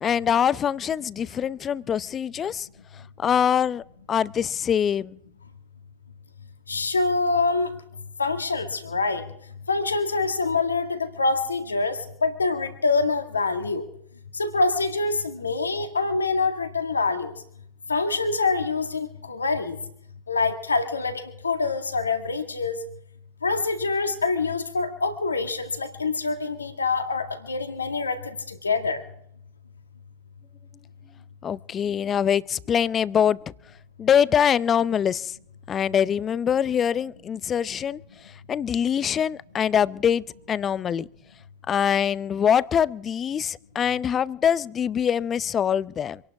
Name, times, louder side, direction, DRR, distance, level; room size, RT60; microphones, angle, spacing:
voice 1, 0.0-2.7 3.2-3.8 4.1-5.2 31.4-33.5 34.0-35.4 35.7-41.1 41.7-46.2, left 8 dB, 30° left, 20 dB, 0.6 m, -24 dB
voice 2, 6.7-7.7 8.2-9.2 9.7-13.8 14.3-17.3 17.9-19.8 20.3-22.8 23.4-28.4 28.6-29.0, left 3 dB, 85° left, 6 dB, 2.0 m, -25 dB
26.0 x 11.5 x 4.8 m, 0.70 s
figure-of-eight pair, 85°, 0 cm